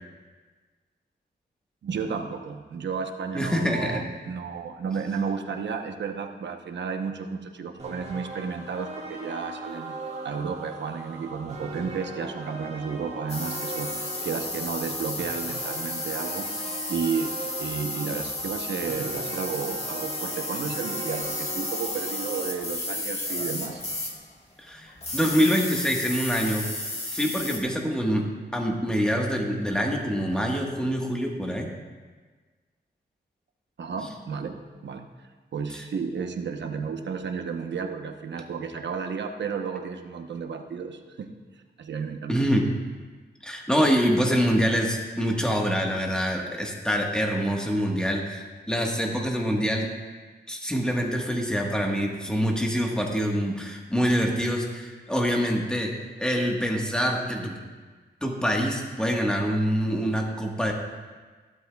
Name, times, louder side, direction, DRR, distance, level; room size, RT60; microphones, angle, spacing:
voice 1, 1.8-10.0 10.2-13.9 14.2-17.3 17.6-23.8 33.8-35.0 35.5-41.3 41.8-42.4, right 5 dB, 85° right, 5 dB, 0.9 m, -32 dB
voice 2, 3.3-4.0 24.6-26.7 27.1-31.7 35.7-35.8 42.3-42.7 43.4-49.9 50.5-55.9 56.2-57.6 58.2-60.7, equal, 5° left, 0 dB, 1.4 m, -25 dB
sound 1, 7.8-22.6, right 2 dB, 35° right, 1.8 m, -39 dB
sound 2, 13.3-24.2 24.9-27.6, left 2 dB, 35° left, 1.6 m, -33 dB
16.0 x 12.0 x 2.3 m, 1.4 s
wide cardioid pair, 135°, 18 cm